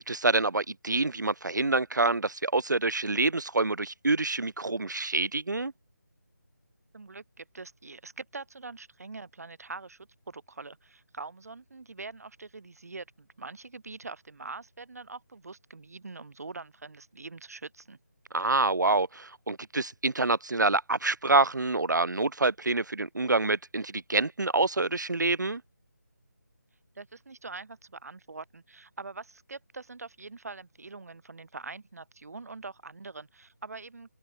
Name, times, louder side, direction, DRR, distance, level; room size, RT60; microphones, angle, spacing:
voice 1, 0.0-5.7 18.3-25.6, right 3 dB, 80° right, 1.5 m, -27 dB
voice 2, 6.9-18.0 26.9-34.1, right 3 dB, 55° right, 4.9 m, -44 dB
figure-of-eight pair, 165°, 10 cm